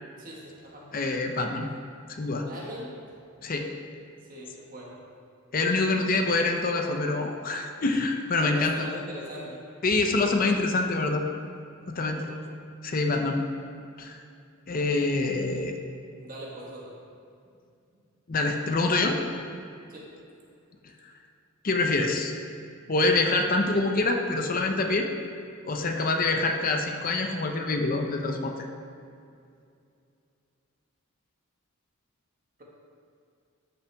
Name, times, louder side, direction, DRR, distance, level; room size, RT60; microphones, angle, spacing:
voice 1, 0.2-0.9 2.4-2.9 4.3-5.0 8.4-10.0 12.1-12.4 16.2-17.0 17.4-17.5 17.9-18.0 19.9-20.1, equal, 40° right, -3 dB, 1.6 m, -41 dB
voice 2, 0.9-1.7 2.2-2.5 3.4-3.7 5.5-8.7 9.8-11.2 11.9-12.3 12.8-13.4 14.0-14.2 14.7-15.8 18.3-19.2 21.6-22.3 22.9-25.1 25.6-28.7, left 3 dB, 40° left, 4 dB, 0.6 m, -25 dB
12.5 x 5.9 x 3.5 m, 2.4 s
head